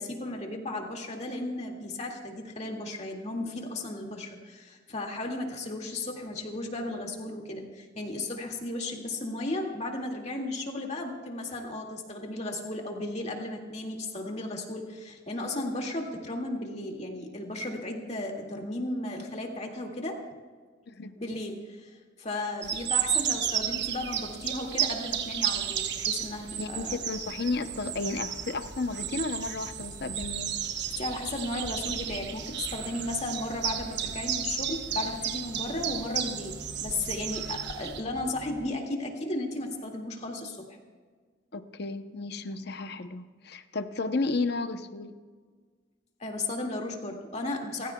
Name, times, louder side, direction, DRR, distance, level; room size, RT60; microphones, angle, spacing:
voice 1, 0.0-20.2 21.2-27.0 31.0-36.6 36.8-40.6 46.2-47.9, left 2 dB, 35° left, 1 dB, 2.1 m, -35 dB
voice 2, 20.9-21.2 26.6-30.6 41.5-45.1, left 3 dB, 55° left, 9 dB, 0.8 m, -33 dB
sound 1, 22.6-38.0, right 9 dB, 60° right, 1.0 m, -33 dB
sound 2, 27.6-38.7, equal, 15° right, 2.0 m, -49 dB
29.0 x 15.0 x 2.3 m, 1.5 s
head